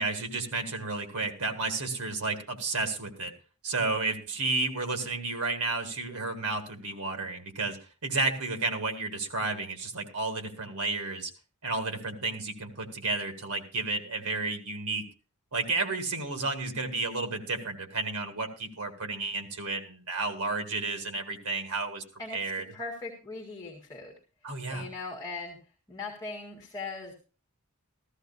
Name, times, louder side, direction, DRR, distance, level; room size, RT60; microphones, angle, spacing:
voice 1, 0.0-3.3 3.6-11.3 11.6-15.1 15.5-22.0 22.3-22.6 24.4-24.9, right 3 dB, 80° right, 7 dB, 1.8 m, -32 dB
voice 2, 22.7-24.1 24.7-25.6 25.9-27.1, left 3 dB, 15° left, -1 dB, 2.0 m, -39 dB
14.5 x 14.0 x 2.7 m, 0.34 s
head